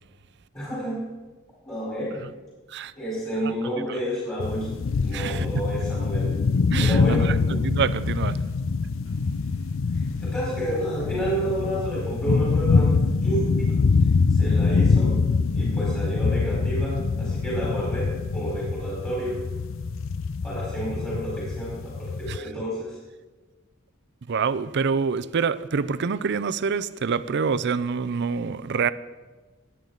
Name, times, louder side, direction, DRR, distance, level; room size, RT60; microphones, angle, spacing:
voice 1, 0.5-1.1 1.6-2.2 3.0-4.7 5.0-6.3 6.8-7.6 9.9-15.2 15.5-19.4 20.4-23.0, right 1 dB, 15° left, 4.2 m, -30 dB
sound 1, 4.4-22.4, left 4 dB, 70° left, 0.5 m, -24 dB
voice 2, 5.1-5.6 6.7-8.4 22.3-22.5 24.3-28.9, right 5 dB, 55° right, 0.5 m, -26 dB
20.0 x 8.8 x 3.9 m
head